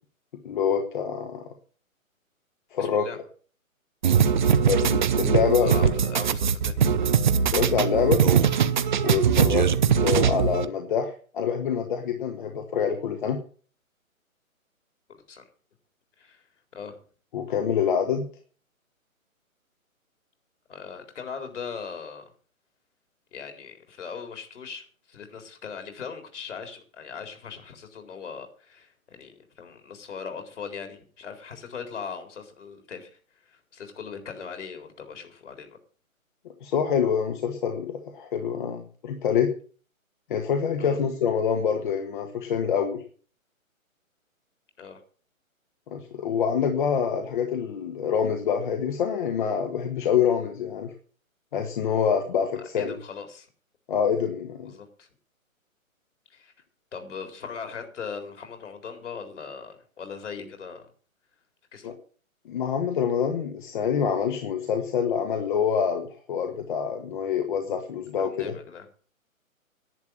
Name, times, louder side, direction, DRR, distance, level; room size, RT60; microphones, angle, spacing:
voice 1, 0.4-1.4 2.7-3.0 4.7-5.9 7.5-8.2 9.0-9.7 10.0-13.4 17.3-18.2 36.6-39.5 40.3-43.0 45.9-50.9 51.5-52.9 53.9-54.7 61.8-61.9 62.5-68.5, left 7 dB, 35° left, 5 dB, 1.6 m, -26 dB
voice 2, 2.8-3.2 5.6-6.8 15.3-15.4 16.2-16.4 16.7-17.0 20.7-22.2 23.3-35.8 40.8-41.0 44.8-45.0 52.7-53.5 54.6-55.1 56.3-56.5 56.9-60.9 61.7-61.9 68.2-68.8, left 6 dB, 55° left, 5 dB, 4.2 m, -39 dB
sound 1, 4.0-10.7, right 7 dB, 35° right, 0.7 m, -21 dB
11.0 x 9.9 x 7.4 m, 0.41 s
figure-of-eight pair, 135°, 42 cm